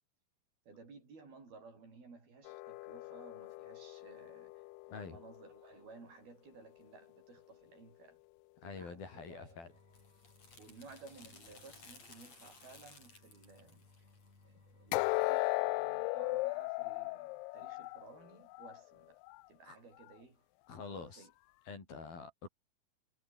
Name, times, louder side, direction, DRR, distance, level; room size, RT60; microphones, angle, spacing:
voice 1, 0.7-4.5 4.9-8.2 8.6-9.6 10.6-13.8 14.4-19.2 19.5-20.4 20.9-21.3, right 4 dB, 55° right, 8.9 m, -56 dB
sound 1, 2.5-5.6 14.9-18.8 19.2-19.4 20.0-20.1, left 22 dB, 80° left, 2.4 m, -37 dB
voice 2, 8.6-9.7 19.6-19.8 20.7-21.3 21.7-22.5, left 5 dB, 55° left, 6.9 m, -46 dB
sound 2, 9.5-15.0, left 4 dB, 35° left, 7.2 m, -58 dB
omnidirectional pair, 5.1 m